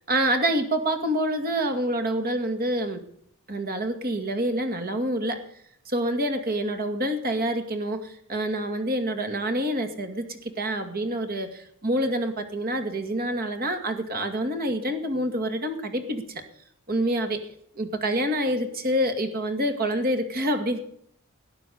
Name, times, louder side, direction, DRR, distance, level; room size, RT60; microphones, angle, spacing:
voice 1, 0.1-3.0 3.5-5.4 5.9-16.2 16.9-17.4 17.8-20.8, right 1 dB, 45° right, 7 dB, 2.3 m, -27 dB
18.5 x 9.8 x 7.1 m, 0.71 s
head